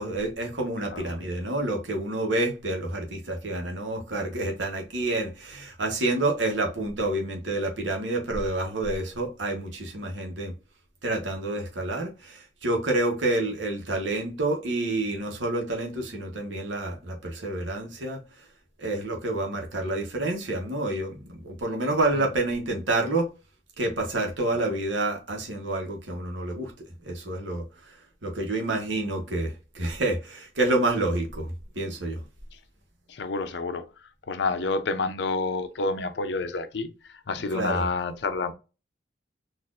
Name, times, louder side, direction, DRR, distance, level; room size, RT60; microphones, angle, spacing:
voice 1, 0.0-10.5 11.0-18.4 18.8-23.3 23.8-26.7 27.0-32.2 37.5-37.8, right 2 dB, 80° right, 1.1 m, -28 dB
voice 2, 33.1-38.5, left 3 dB, 65° left, 0.5 m, -29 dB
4.1 x 2.5 x 2.5 m
head